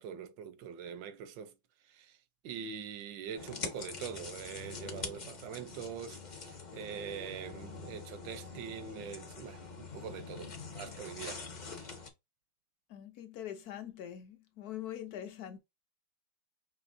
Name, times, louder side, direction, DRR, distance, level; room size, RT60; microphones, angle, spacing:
voice 1, 0.0-1.5 1.9-2.1 2.4-11.9, right 7 dB, 85° right, 1.4 m, -44 dB
sound 1, 3.4-12.1, left 4 dB, 35° left, 0.7 m, -44 dB
voice 2, 12.9-15.6, left 11 dB, 65° left, 1.1 m, -43 dB
5.4 x 3.0 x 2.6 m
omnidirectional pair, 2.0 m